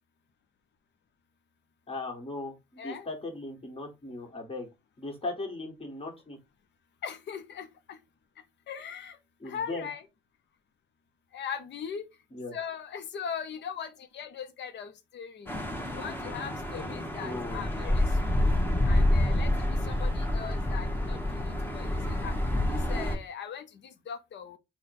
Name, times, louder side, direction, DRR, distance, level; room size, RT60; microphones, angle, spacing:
voice 1, 1.9-4.7 5.0-6.4 9.4-9.9 12.3-12.6 17.2-17.8, left 2 dB, 30° left, 1.6 m, -38 dB
voice 2, 7.0-8.0 8.7-9.2 9.4-10.0 11.3-12.1 12.5-15.6 15.9-18.5 18.8-22.4 22.7-24.6, left 7 dB, 65° left, 0.7 m, -40 dB
sound 1, 15.5-23.2, left 1 dB, 10° left, 1.0 m, -28 dB
3.9 x 2.2 x 4.2 m
cardioid pair, 90°, 20 cm